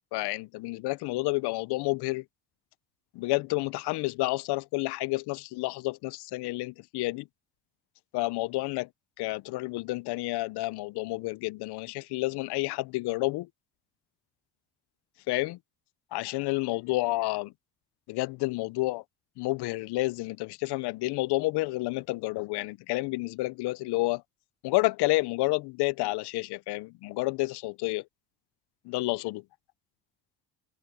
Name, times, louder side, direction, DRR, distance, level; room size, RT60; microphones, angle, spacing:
voice 1, 0.1-2.2 3.1-7.3 8.1-8.9 9.2-13.5 15.3-15.6 16.1-17.5 18.1-19.0 19.4-24.2 24.6-28.0 28.8-29.4, left 21 dB, 85° left, 0.6 m, -30 dB
cardioid pair, 105°, 38 cm